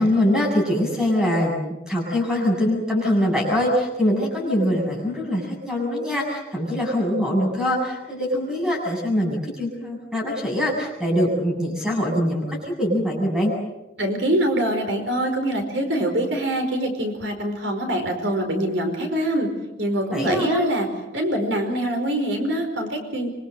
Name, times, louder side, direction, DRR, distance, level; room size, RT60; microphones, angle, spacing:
voice 1, 0.0-1.5 1.9-13.5 20.1-20.6, left 1 dB, 5° right, -1 dB, 7.6 m, -23 dB
voice 2, 14.0-19.5 19.8-20.9 21.1-23.3, right 1 dB, 85° right, 4 dB, 4.9 m, -24 dB
26.0 x 24.0 x 6.7 m, 0.99 s
head